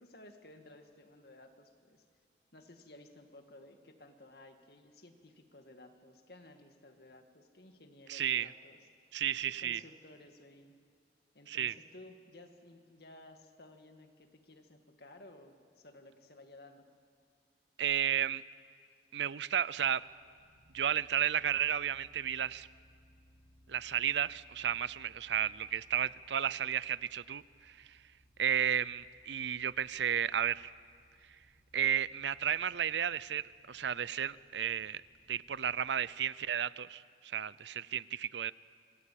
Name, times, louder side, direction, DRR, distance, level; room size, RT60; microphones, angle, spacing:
voice 1, 0.0-2.1 2.5-8.8 9.6-10.7 11.3-16.9, left 1 dB, 60° left, 5 dB, 2.1 m, -56 dB
voice 2, 8.1-8.5 9.1-9.8 11.5-11.7 17.8-18.4 19.1-20.1 20.7-22.7 23.7-28.0 28.4-30.7 31.7-35.0 35.3-38.5, right 9 dB, 80° right, 19 dB, 0.5 m, -33 dB
sound 1, 19.7-35.9, equal, 35° left, 6.6 m, -66 dB
26.5 x 19.5 x 8.7 m, 2.1 s
head